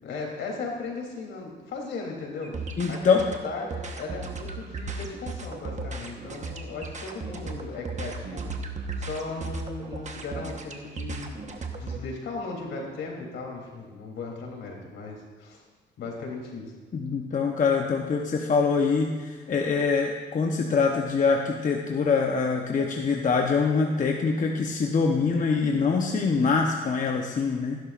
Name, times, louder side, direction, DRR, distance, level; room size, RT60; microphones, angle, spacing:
voice 1, 0.0-3.2 3.4-8.5 9.0-15.6 16.0-16.7, left 3 dB, 70° left, -1 dB, 3.3 m, -37 dB
sound 1, 2.4-12.0, right 3 dB, 35° right, 1.2 m, -36 dB
voice 2, 2.8-3.2 16.9-27.8, left 5 dB, 40° left, 1 dB, 1.0 m, -24 dB
15.5 x 11.5 x 2.5 m, 1.5 s
cardioid pair, 90°, 20 cm